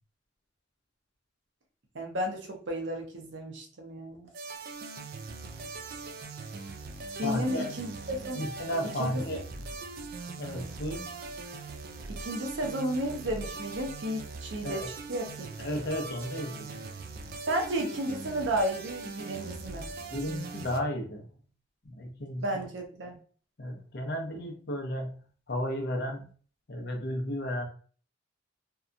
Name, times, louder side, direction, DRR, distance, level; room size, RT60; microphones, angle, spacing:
voice 1, 1.9-4.3 7.2-8.5 8.8-9.2 12.1-15.3 17.5-19.9 22.4-23.2, right 1 dB, 70° right, 2 dB, 0.7 m, -33 dB
sound 1, 4.3-20.8, right 3 dB, 50° right, 0.3 m, -41 dB
voice 2, 7.2-7.7 8.4-9.4 10.4-11.1 14.6-14.9 15.6-16.8 20.1-21.2 21.9-22.4 23.6-25.1 25.5-26.3 26.7-27.7, equal, 55° left, 3 dB, 0.6 m, -33 dB
2.7 x 2.2 x 2.5 m, 0.42 s
head